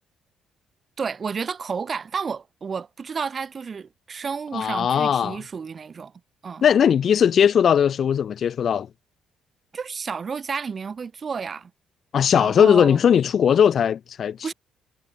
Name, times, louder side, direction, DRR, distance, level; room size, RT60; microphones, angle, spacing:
voice 1, 1.0-6.1 6.4-6.7 9.7-11.7 12.3-13.0 14.4-14.5, right 5 dB, 40° right, 0.7 m, -31 dB
voice 2, 4.5-5.4 6.6-8.9 12.1-14.5, left 8 dB, 55° left, 0.5 m, -19 dB
cardioid pair, 95°, 0 cm